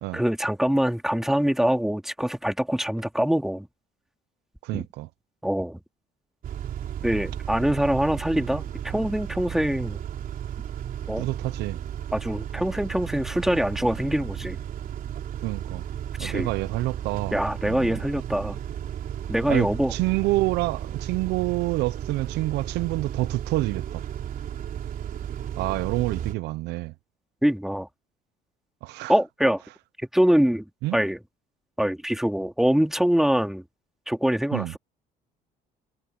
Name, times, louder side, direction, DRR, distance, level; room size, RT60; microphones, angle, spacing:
voice 1, 0.1-3.7 4.7-4.9 5.4-5.8 7.0-10.0 11.1-11.3 12.1-14.6 16.2-16.5 17.3-18.6 19.3-19.9 27.4-27.9 29.1-29.6 30.1-30.6 30.9-31.2 31.8-33.6 34.1-34.8, equal, ahead, 2.4 m, -24 dB
voice 2, 4.6-5.1 11.2-11.8 15.4-15.8 16.2-17.4 17.6-18.0 19.5-24.0 25.6-26.9 28.8-29.1 30.8-31.0 34.5-34.7, right 19 dB, 85° right, 0.6 m, -28 dB
Car / Idling / Accelerating revving vroom, 6.4-26.3, right 9 dB, 55° right, 3.6 m, -34 dB
cardioid pair, 110°, 17 cm